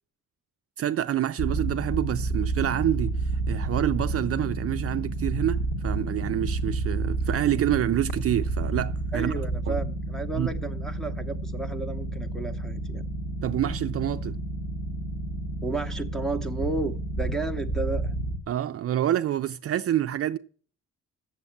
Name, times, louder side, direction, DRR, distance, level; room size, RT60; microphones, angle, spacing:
voice 1, 0.8-9.3 9.7-9.8 10.3-10.5 13.4-14.4 18.5-20.4, right 11 dB, 50° right, 0.4 m, -27 dB
sound 1, 1.4-18.4, right 2 dB, 30° left, 1.3 m, -30 dB
voice 2, 9.1-13.0 15.6-18.1, right 3 dB, ahead, 0.8 m, -33 dB
8.2 x 7.2 x 8.6 m
wide cardioid pair, 155°, 30 cm